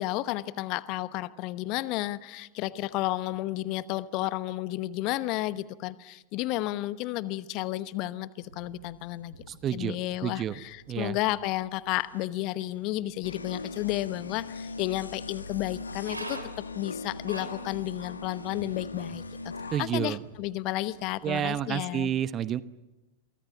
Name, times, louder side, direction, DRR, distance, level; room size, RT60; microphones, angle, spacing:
voice 1, 0.0-9.3 9.7-19.5 19.8-22.1, left 16 dB, 40° left, 16 dB, 1.0 m, -32 dB
sound 1, 8.4-21.5, right 1 dB, 85° right, 3.6 m, -49 dB
voice 2, 9.5-10.0 10.2-10.6 10.9-11.2 19.7-20.2 21.2-22.6, right 10 dB, 30° right, 15 dB, 1.0 m, -29 dB
sound 2, 13.2-19.9, left 4 dB, 75° left, 1.5 m, -40 dB
28.5 x 24.0 x 7.3 m, 1.0 s
figure-of-eight pair, 90°, 0 cm